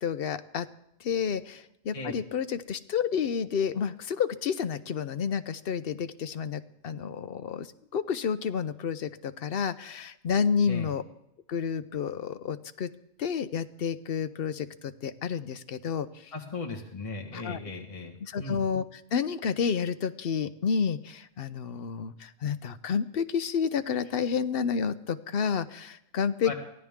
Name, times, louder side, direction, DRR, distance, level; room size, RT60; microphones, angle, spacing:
voice 1, 0.0-0.7 1.0-7.7 7.9-11.0 11.5-12.9 13.2-16.1 17.3-17.6 18.2-26.5, left 6 dB, 60° left, 12 dB, 0.9 m, -30 dB
voice 2, 16.3-18.6 26.4-26.5, left 3 dB, 30° left, 1 dB, 1.6 m, -37 dB
23.5 x 16.5 x 3.7 m, 0.81 s
omnidirectional pair, 1.2 m